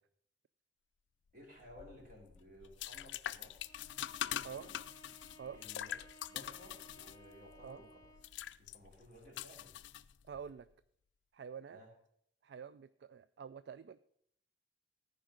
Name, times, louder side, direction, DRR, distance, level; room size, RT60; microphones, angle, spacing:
voice 1, 1.3-3.8 4.2-4.7 5.6-8.2 8.6-9.7 11.7-11.9, left 1 dB, 45° right, -1 dB, 3.3 m, -57 dB
sound 1, 1.6-10.5, left 11 dB, 75° left, 0.4 m, -44 dB
Bowed string instrument, 3.6-8.4, right 1 dB, 20° left, 1.0 m, -60 dB
voice 2, 10.2-10.7 11.3-11.8 12.4-14.0, right 7 dB, 65° right, 14 dB, 0.3 m, -47 dB
14.0 x 5.1 x 6.4 m, 0.68 s
head